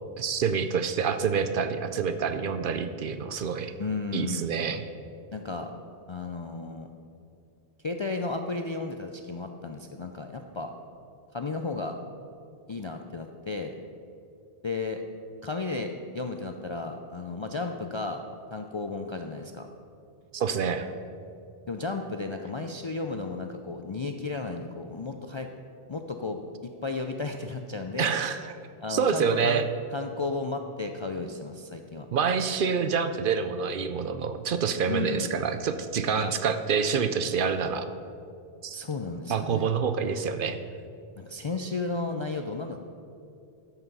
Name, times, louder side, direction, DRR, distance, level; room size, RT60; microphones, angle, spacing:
voice 1, 0.2-3.7 4.1-4.8 20.3-20.9 28.0-28.4 28.9-29.6 32.1-37.9 38.6-38.8 39.3-40.6, right 6 dB, 60° right, 10 dB, 0.7 m, -27 dB
voice 2, 3.8-4.6 5.3-5.7 6.1-6.9 7.8-10.7 11.3-12.0 12.7-13.7 14.6-15.0 15.4-18.2 18.5-19.7 21.7-25.5 25.9-28.1 28.8-29.6 29.9-32.1 34.9-35.3 36.1-36.3 38.7-39.7 41.2-42.9, left 3 dB, 45° left, 4 dB, 0.4 m, -33 dB
13.0 x 5.9 x 5.4 m, 2.6 s
omnidirectional pair, 1.1 m